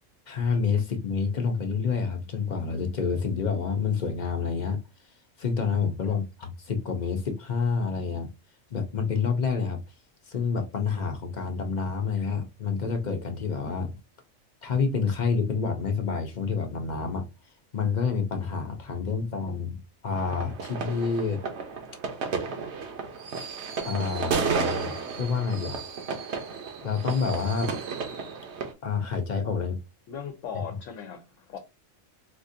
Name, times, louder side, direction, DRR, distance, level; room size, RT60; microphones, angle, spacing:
voice 1, 0.3-4.8 5.4-8.3 8.7-9.8 10.3-14.0 14.6-17.3 17.7-21.4 23.8-25.8 26.8-27.7 28.8-29.8, left 5 dB, 45° left, 0.6 m, -28 dB
sound 1, 20.2-28.7, right 5 dB, 65° right, 1.0 m, -32 dB
voice 2, 30.1-31.6, left 7 dB, 75° left, 0.9 m, -38 dB
4.2 x 2.5 x 2.5 m
omnidirectional pair, 1.3 m